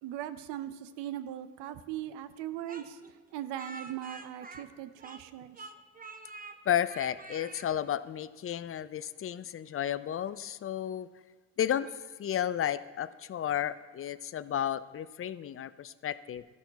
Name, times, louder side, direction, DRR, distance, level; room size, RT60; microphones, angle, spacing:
voice 1, 0.0-3.0 3.3-5.7, right 12 dB, 75° right, 13 dB, 0.6 m, -39 dB
Speech, 2.7-5.3 5.5-6.6 6.9-7.7, right 3 dB, 20° right, 0.8 m, -46 dB
voice 2, 6.7-11.1 11.6-16.4, left 10 dB, 35° left, 16 dB, 0.4 m, -33 dB
13.5 x 6.0 x 4.0 m, 1.3 s
hypercardioid pair, 55°, 42 cm